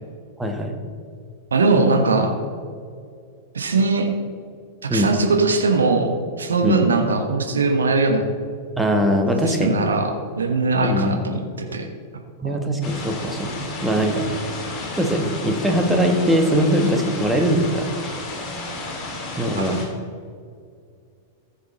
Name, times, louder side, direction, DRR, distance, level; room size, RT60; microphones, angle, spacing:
voice 1, 0.4-0.8 4.9-5.1 6.6-6.8 8.8-9.7 10.8-11.2 12.4-14.2 15.0-17.9 19.4-19.8, equal, 5° right, 3 dB, 1.5 m, -21 dB
voice 2, 1.5-2.3 3.5-4.1 4.9-8.2 9.4-11.4 11.7-11.9 19.6-19.7, right 3 dB, 75° right, 4 dB, 1.3 m, -20 dB
sound 1, 12.8-19.9, left 2 dB, 30° left, 2.6 m, -32 dB
14.5 x 7.1 x 4.1 m, 2.2 s
figure-of-eight pair, 95°, 0 cm